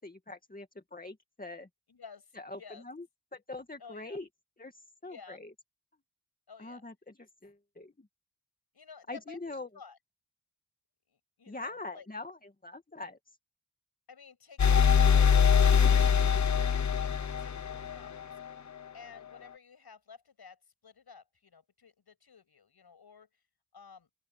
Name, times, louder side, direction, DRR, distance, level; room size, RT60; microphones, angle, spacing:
voice 1, 0.0-1.7 2.3-3.1 3.3-4.3 4.6-5.5 6.6-8.1 9.1-9.7 11.5-13.2, left 2 dB, 20° left, 2.1 m, -43 dB
voice 2, 1.9-2.8 3.8-4.2 5.0-5.4 6.5-6.9 8.7-10.0 11.1-12.1 14.1-18.4 18.9-23.4 23.7-24.1, left 6 dB, 75° left, 7.0 m, -53 dB
sound 1, 14.6-18.3, left 7 dB, 50° left, 0.9 m, -23 dB
open air
wide cardioid pair, 80°, 39 cm